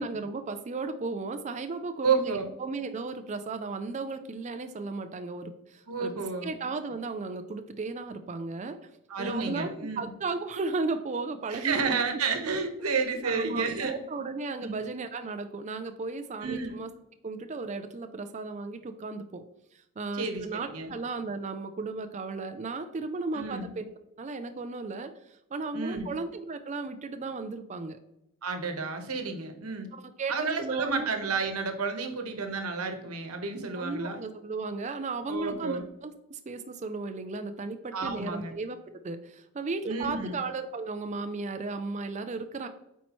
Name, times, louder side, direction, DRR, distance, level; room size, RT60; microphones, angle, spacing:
voice 1, 0.0-8.8 9.2-9.7 10.0-12.0 13.2-16.9 17.2-19.4 19.7-23.9 24.2-28.0 30.2-31.1 32.0-32.2 33.6-38.8 39.0-42.7, right 3 dB, 30° right, 8 dB, 0.4 m, -35 dB
voice 2, 2.0-2.5 5.9-6.5 9.1-10.0 11.5-13.9 14.6-14.8 16.4-16.7 20.1-20.4 20.7-20.9 23.3-23.7 25.7-26.1 28.4-29.9 30.3-34.2 35.3-35.9 37.9-38.5 39.9-40.4, right 4 dB, 75° right, 6 dB, 1.1 m, -31 dB
8.4 x 4.5 x 3.0 m, 0.86 s
head